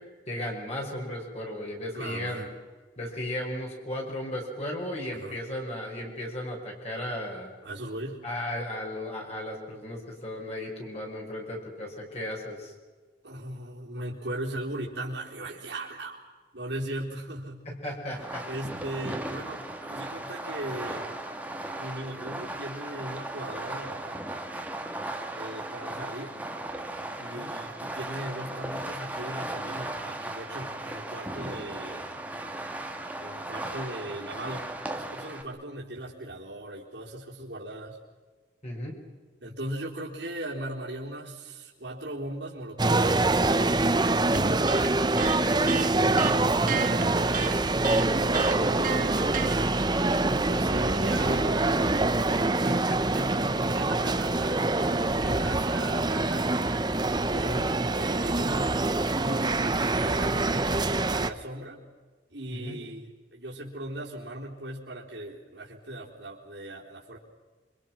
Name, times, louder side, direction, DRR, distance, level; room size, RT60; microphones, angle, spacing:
voice 1, 0.3-2.5 3.0-7.5 8.2-12.7 17.7-18.4 27.2-27.5 38.6-39.0 45.4-45.6 57.4-57.7 62.6-62.8, left 1 dB, 35° left, -1 dB, 5.7 m, -35 dB
voice 2, 1.9-2.5 5.1-5.4 7.6-8.2 13.2-16.2 16.5-17.7 18.5-21.1 21.8-24.1 25.3-26.4 27.2-32.2 33.2-38.0 39.4-43.3 45.3-47.6 48.2-49.2 50.2-56.6 57.3-58.8 59.2-61.8 62.3-67.2, right 1 dB, 75° right, -4 dB, 4.3 m, -38 dB
Fireworks, 18.1-35.4, right 1 dB, 10° right, 2.1 m, -37 dB
sound 1, 42.8-61.3, right 2 dB, 25° right, 1.0 m, -25 dB
Electric guitar, 44.3-49.6, right 6 dB, 50° right, 1.8 m, -32 dB
27.5 x 25.5 x 6.1 m, 1.4 s
head